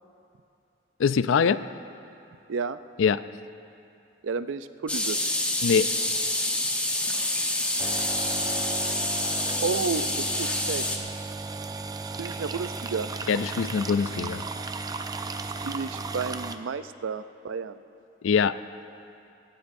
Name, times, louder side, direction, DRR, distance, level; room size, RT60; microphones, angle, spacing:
voice 1, 1.0-1.6 3.0-3.2 5.6-5.9 13.3-14.4 18.2-18.6, left 6 dB, 80° left, 14 dB, 0.4 m, -23 dB
voice 2, 4.2-5.3 9.6-10.8 12.2-13.1 15.6-17.8, right 5 dB, 80° right, 12 dB, 0.5 m, -31 dB
sound 1, 4.9-11.0, left 1 dB, 5° left, 0.8 m, -27 dB
sound 2, 7.8-16.5, right 3 dB, 20° right, 0.4 m, -35 dB
18.5 x 16.5 x 2.6 m, 2.6 s
head